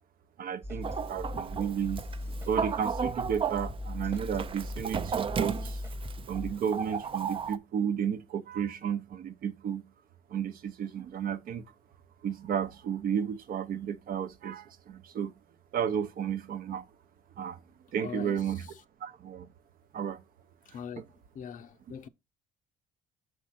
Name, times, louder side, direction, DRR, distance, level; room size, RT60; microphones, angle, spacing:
voice 1, 0.4-2.1 2.5-5.8 6.3-9.8 10.3-11.6 12.2-15.3 15.7-16.9 17.4-17.6 17.9-18.7 19.0-19.5 19.9-20.2 21.0-21.1, right 8 dB, 60° right, 0.8 m, -33 dB
sound 1, 0.6-6.5, left 1 dB, 15° right, 1.0 m, -39 dB
Chicken rooster, 0.8-7.6, right 6 dB, 30° right, 0.4 m, -35 dB
voice 2, 18.0-18.4 20.7-21.1 21.3-22.1, left 8 dB, 50° left, 0.6 m, -41 dB
6.4 x 4.6 x 4.1 m
cardioid pair, 110°, 17 cm